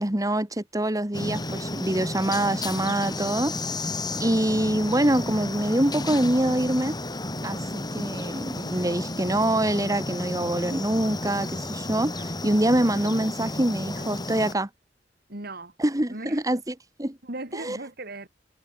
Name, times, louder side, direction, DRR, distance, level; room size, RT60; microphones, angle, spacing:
voice 1, 0.0-3.5 4.2-6.9 7.4-14.7 15.8-17.2 17.5-17.8, right 1 dB, 20° right, 1.9 m, -25 dB
sound 1, 1.1-14.5, left 2 dB, 25° left, 5.0 m, -32 dB
voice 2, 15.3-15.7 16.1-16.4 17.2-18.3, right 2 dB, 55° right, 3.8 m, -37 dB
head